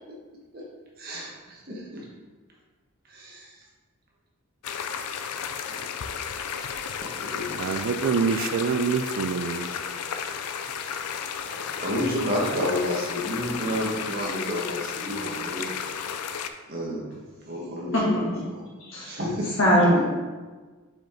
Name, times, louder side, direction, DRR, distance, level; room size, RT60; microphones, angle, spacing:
voice 1, 1.0-2.0 3.1-3.5 7.2-7.8 11.5-15.7 16.7-17.1 17.4-18.1 19.1-19.5 19.9-20.1, left 1 dB, 45° right, 1.3 m, -30 dB
sound 1, 4.6-16.5, left 7 dB, 90° left, 0.4 m, -33 dB
voice 2, 7.6-9.7, right 5 dB, 60° right, 0.3 m, -26 dB
voice 3, 17.9-18.4 18.8-20.1, equal, 60° left, 1.9 m, -22 dB
5.3 x 5.0 x 3.7 m
head